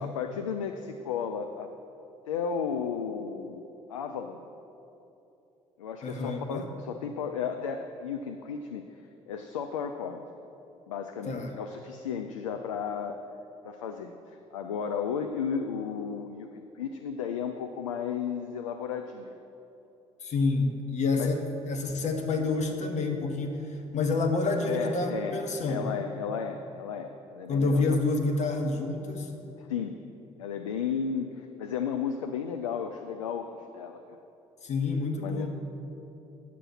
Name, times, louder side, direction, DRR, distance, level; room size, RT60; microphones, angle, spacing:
voice 1, 0.0-1.7 2.3-4.4 5.8-8.9 9.3-10.2 10.9-13.2 13.6-19.4 21.2-21.3 24.7-25.4 25.6-28.0 29.5-30.0 30.4-34.0 35.2-35.5, left 7 dB, 75° left, 6 dB, 0.4 m, -34 dB
voice 2, 6.0-6.7 11.2-11.5 20.2-25.9 27.5-29.3 34.6-35.5, left 3 dB, 45° left, 3 dB, 1.3 m, -28 dB
9.7 x 7.1 x 6.0 m, 2.9 s
figure-of-eight pair, 45°, 17 cm